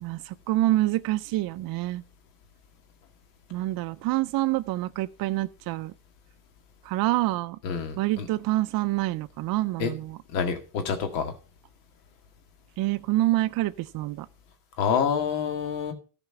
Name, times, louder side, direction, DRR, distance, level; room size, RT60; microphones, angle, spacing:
voice 1, 0.0-2.0 3.5-5.9 6.8-7.6 8.0-10.2 12.8-14.3, right 16 dB, 50° right, 0.4 m, -27 dB
voice 2, 7.6-8.3 9.8-9.9 10.3-11.3 14.8-15.9, left 6 dB, 85° left, 2.1 m, -27 dB
14.0 x 5.0 x 5.6 m
supercardioid pair, 95°, 48 cm